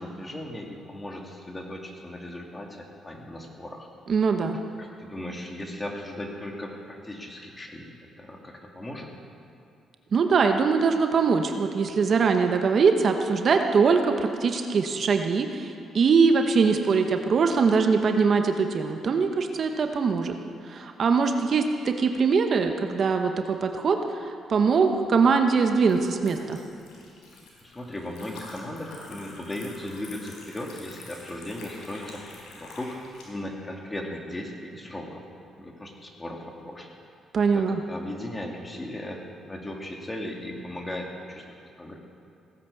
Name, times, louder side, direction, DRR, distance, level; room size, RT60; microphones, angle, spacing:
voice 1, 0.0-3.9 4.4-4.5 4.8-7.9 8.2-9.1 27.6-32.2 32.6-33.0 33.3-35.2 35.6-36.9 37.5-41.4 41.8-42.0, left 1 dB, 20° left, 1 dB, 2.5 m, -37 dB
voice 2, 4.1-4.6 10.1-20.4 20.7-26.6 37.3-37.8, right 5 dB, 50° right, 5 dB, 1.0 m, -22 dB
Liquid, 24.9-33.2, left 2 dB, 80° left, 4.1 m, -47 dB
17.0 x 10.5 x 7.2 m, 2.6 s
cardioid pair, 90°, 0 cm